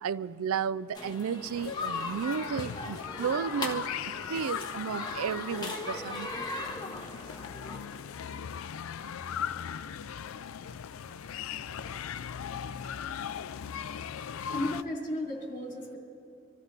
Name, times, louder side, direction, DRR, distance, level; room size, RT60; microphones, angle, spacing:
voice 1, 0.0-3.9 4.3-6.3, right 7 dB, 90° right, 18 dB, 0.4 m, -33 dB
sound 1, 1.0-7.8, left 3 dB, 20° left, 1.2 m, -38 dB
sound 2, 1.5-14.8, left 8 dB, 80° left, 0.4 m, -39 dB
voice 2, 14.2-16.0, left 1 dB, 35° left, -1 dB, 2.9 m, -35 dB
24.5 x 14.0 x 4.0 m, 2.5 s
head